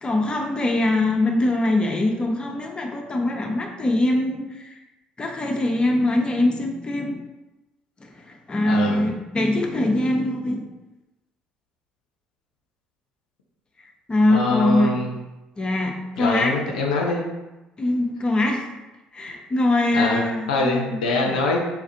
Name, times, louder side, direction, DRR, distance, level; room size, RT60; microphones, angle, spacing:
voice 1, 0.0-4.8 5.2-7.2 8.0-10.7 14.1-15.0 15.6-16.7 17.8-18.7 19.1-21.4, left 1 dB, 25° left, 1 dB, 0.6 m, -23 dB
voice 2, 8.7-9.0 14.3-15.1 16.2-17.3 19.9-20.2 20.5-21.6, left 3 dB, 75° left, -1 dB, 0.5 m, -24 dB
4.4 x 2.4 x 2.6 m, 1.0 s
figure-of-eight pair, 50°, 4 cm